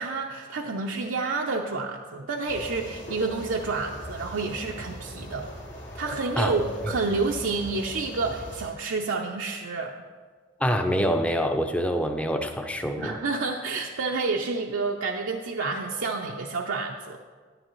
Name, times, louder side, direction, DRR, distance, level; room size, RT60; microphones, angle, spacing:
voice 1, 0.0-5.5 5.9-10.0 13.0-17.2, right 3 dB, 75° right, 0 dB, 0.6 m, -29 dB
sound 1, 2.5-8.7, equal, 75° left, 1.9 m, -40 dB
voice 2, 10.6-13.2, equal, 5° left, 5 dB, 0.5 m, -25 dB
10.5 x 9.8 x 3.1 m, 1.5 s
head